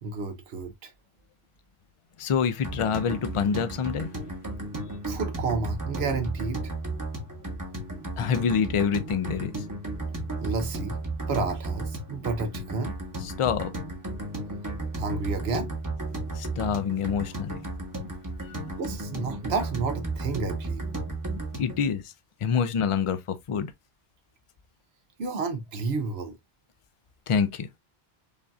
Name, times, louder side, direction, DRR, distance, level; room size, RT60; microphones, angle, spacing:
voice 1, 0.0-0.9 5.1-6.7 10.4-11.0 11.3-12.9 14.9-15.7 18.8-20.9 25.2-26.4, right 4 dB, 75° right, 0.9 m, -31 dB
voice 2, 2.2-4.1 8.2-9.5 13.2-13.7 16.4-17.6 21.6-22.0 22.4-23.2 23.5-23.7 27.3-27.7, left 6 dB, 55° left, 0.3 m, -26 dB
sound 1, 2.6-21.8, right 2 dB, 20° right, 0.8 m, -34 dB
5.1 x 2.6 x 2.3 m
omnidirectional pair, 1.1 m